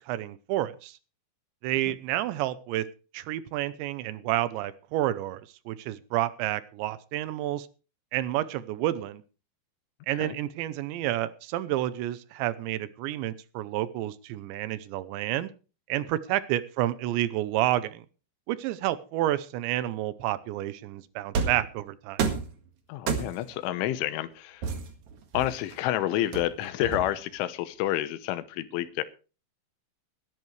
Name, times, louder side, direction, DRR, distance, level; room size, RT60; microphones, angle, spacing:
voice 1, 0.1-1.0 1.6-2.8 3.1-7.7 8.1-9.2 10.1-15.5 15.9-18.1 18.5-22.3, right 14 dB, 80° right, 15 dB, 3.0 m, -30 dB
sound 1, 21.3-21.7 22.2-22.5 23.1-23.5 24.6-25.7 26.3-27.3, right 5 dB, 55° right, 2.4 m, -30 dB
voice 2, 22.9-24.7 25.3-29.0, left 13 dB, 90° left, 13 dB, 3.5 m, -29 dB
21.5 x 11.0 x 3.2 m, 0.34 s
omnidirectional pair, 5.4 m